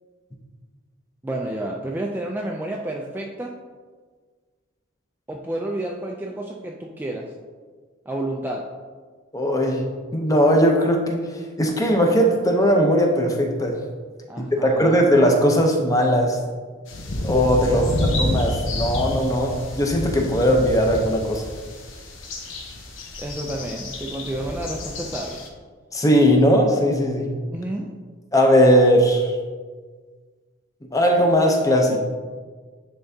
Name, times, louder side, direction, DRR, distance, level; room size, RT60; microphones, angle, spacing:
voice 1, 1.2-3.5 5.3-7.3 8.1-8.6 14.3-15.0 17.7-18.0 23.2-25.4 27.5-27.9, right 1 dB, 10° right, -1 dB, 0.3 m, -30 dB
voice 2, 9.3-9.8 10.1-11.2 11.6-13.7 14.4-16.4 17.2-21.4 25.9-27.3 28.3-29.4 30.9-32.0, equal, 15° left, 2 dB, 0.7 m, -18 dB
sound 1, 16.9-25.5, left 1 dB, 75° left, 0.9 m, -29 dB
10.0 x 3.5 x 2.7 m, 1.5 s
head